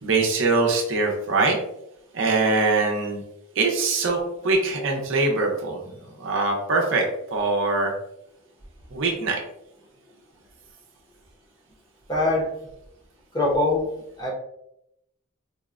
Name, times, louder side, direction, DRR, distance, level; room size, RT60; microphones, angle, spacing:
voice 1, 0.0-1.6 2.1-3.2 3.6-7.1 7.3-7.9 8.9-9.4, right 3 dB, 60° right, 0 dB, 0.6 m, -23 dB
voice 2, 12.1-12.5 13.3-13.9 14.2-14.3, left 2 dB, 20° left, -3 dB, 0.6 m, -22 dB
4.1 x 2.1 x 2.4 m, 0.81 s
head